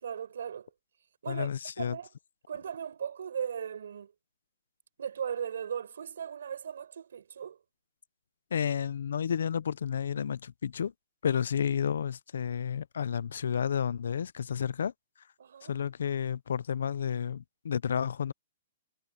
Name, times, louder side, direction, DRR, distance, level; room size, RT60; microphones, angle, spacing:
voice 1, 0.0-0.7 1.2-1.5 1.8-2.1 2.5-4.1 5.0-7.6 15.4-15.7, right 8 dB, 80° right, 4.7 m, -37 dB
voice 2, 1.3-2.0 8.5-10.9 11.2-14.9 15.6-18.3, left 8 dB, 85° left, 0.6 m, -31 dB
hypercardioid pair, 165°, 0 cm